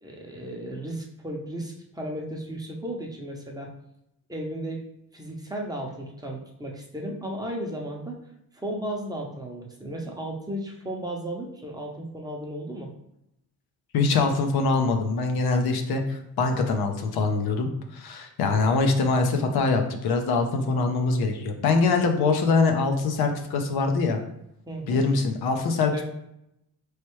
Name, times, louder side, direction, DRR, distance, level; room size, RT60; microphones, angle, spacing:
voice 1, 0.0-3.7 4.3-4.8 5.1-8.2 8.5-12.9 24.7-25.0 25.9-26.0, right 1 dB, 10° right, -1 dB, 0.7 m, -34 dB
voice 2, 13.9-24.2 24.9-26.0, left 3 dB, 75° left, 5 dB, 0.7 m, -23 dB
4.3 x 3.3 x 3.1 m, 0.81 s
cardioid pair, 125°, 37 cm